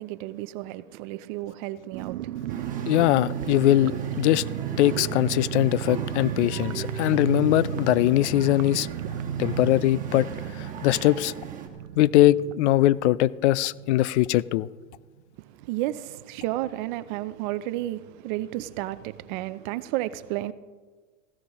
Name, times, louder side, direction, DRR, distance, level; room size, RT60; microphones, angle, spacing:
voice 1, 0.0-2.8 15.4-20.5, right 15 dB, 40° right, 0.4 m, -32 dB
sound 1, 1.9-14.3 14.5-14.6 14.9-15.2, right 10 dB, 75° right, 0.8 m, -34 dB
sound 2, 2.5-11.7, right 6 dB, 20° right, 1.8 m, -40 dB
voice 2, 2.9-4.4 4.8-8.9 9.4-10.3 10.5-11.3 12.0-14.7, left 14 dB, 65° left, 0.5 m, -21 dB
16.5 x 16.0 x 3.0 m
supercardioid pair, 140°, 38 cm